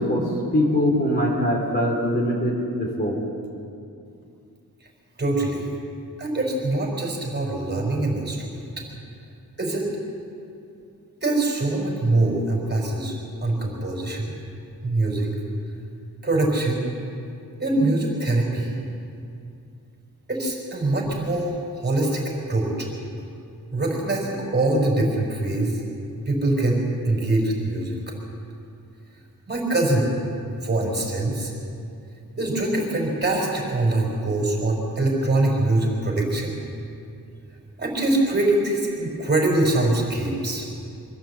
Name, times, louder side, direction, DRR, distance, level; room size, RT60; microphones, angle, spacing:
voice 1, 0.5-3.2, left 1 dB, 30° left, -3 dB, 4.3 m, -22 dB
voice 2, 5.2-5.7 6.2-8.6 9.6-9.9 11.2-13.1 13.4-14.3 14.8-15.3 16.2-16.8 17.6-18.7 20.3-22.9 23.7-25.8 26.3-28.1 29.5-30.1 30.6-31.5 32.4-36.6 37.8-40.7, right 2 dB, 30° right, -2 dB, 4.8 m, -23 dB
24.0 x 15.0 x 8.1 m, 2.6 s
wide cardioid pair, 145°, 36 cm